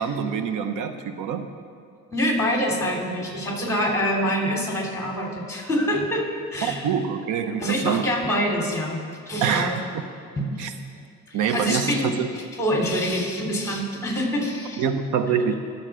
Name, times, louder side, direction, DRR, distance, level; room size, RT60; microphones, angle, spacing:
voice 1, 0.0-1.5 6.6-8.1 9.4-9.7 10.6-10.7 11.3-12.3 14.8-15.5, right 7 dB, 85° right, 8 dB, 1.0 m, -25 dB
voice 2, 2.1-6.9 7.6-9.0 9.3-9.8 10.4-10.5 10.9-11.0 11.3-12.1 12.6-14.8, equal, 10° left, -1 dB, 3.5 m, -25 dB
20.5 x 7.3 x 5.0 m, 2.2 s
cardioid pair, 90°, 30 cm